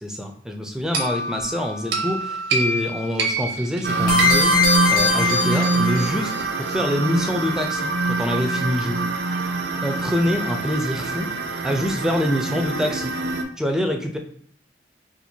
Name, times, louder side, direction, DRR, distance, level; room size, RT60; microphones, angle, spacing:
voice 1, 0.0-4.6 4.9-6.3 6.6-9.0 9.8-11.3 11.6-13.1 13.6-14.2, equal, 5° right, 3 dB, 0.4 m, -25 dB
sound 1, 0.9-5.7, right 3 dB, 90° right, 0.7 m, -27 dB
sound 2, 3.8-13.4, right 3 dB, 60° right, 0.4 m, -25 dB
sound 3, 4.1-6.4, left 5 dB, 50° left, 1.3 m, -21 dB
4.3 x 2.5 x 2.7 m, 0.66 s
head